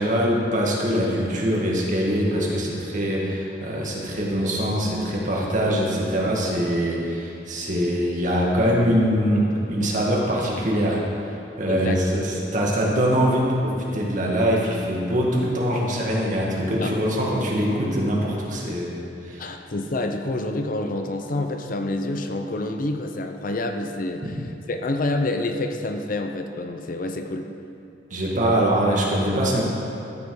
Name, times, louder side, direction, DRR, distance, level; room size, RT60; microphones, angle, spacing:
voice 1, 0.0-11.0 11.3-19.5 24.2-24.3 28.1-29.6, equal, 45° right, -3 dB, 1.9 m, -23 dB
voice 2, 11.7-12.0 16.8-16.9 19.4-24.4 24.7-27.5, left 2 dB, 50° left, 6 dB, 0.7 m, -27 dB
13.0 x 7.5 x 4.8 m, 2.7 s
head